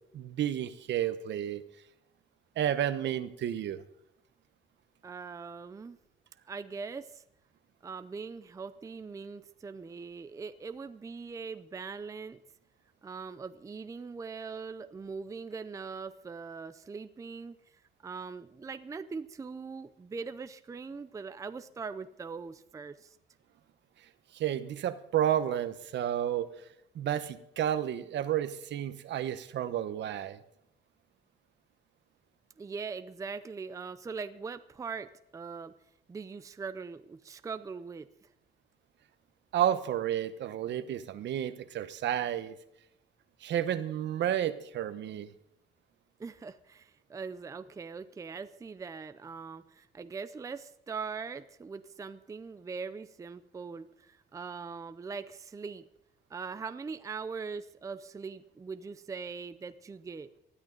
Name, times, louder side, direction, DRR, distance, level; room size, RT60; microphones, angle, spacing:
voice 1, 0.1-1.6 2.6-3.8 24.3-26.5 26.9-30.4 39.5-42.6 43.4-45.3, right 10 dB, 65° right, 12 dB, 1.1 m, -31 dB
voice 2, 5.0-6.0 6.5-7.2 7.8-12.4 13.0-17.6 18.0-23.2 32.6-35.8 36.1-38.1 46.2-55.9 56.3-60.3, right 5 dB, 15° right, 12 dB, 0.5 m, -41 dB
19.5 x 13.0 x 3.9 m, 0.81 s
cardioid pair, 175°, 19 cm